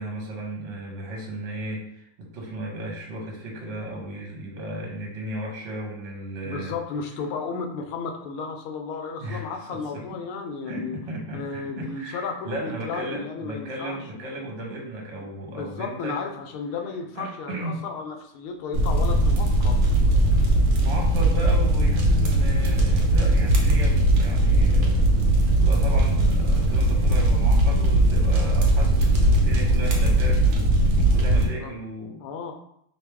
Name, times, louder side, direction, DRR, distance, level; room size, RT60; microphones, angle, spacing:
voice 1, 0.0-6.8 9.2-10.2 10.7-16.2 17.1-17.8 20.8-25.2 25.6-30.7 31.1-32.2, right 1 dB, 45° right, -1 dB, 1.1 m, -35 dB
voice 2, 6.4-11.0 11.3-14.0 15.2-20.0 31.3-31.7 32.2-32.5, left 5 dB, 85° left, 4 dB, 1.4 m, -34 dB
sound 1, 18.7-31.5, right 1 dB, 65° right, 0.8 m, -19 dB
4.1 x 2.9 x 3.4 m, 0.75 s
omnidirectional pair, 2.3 m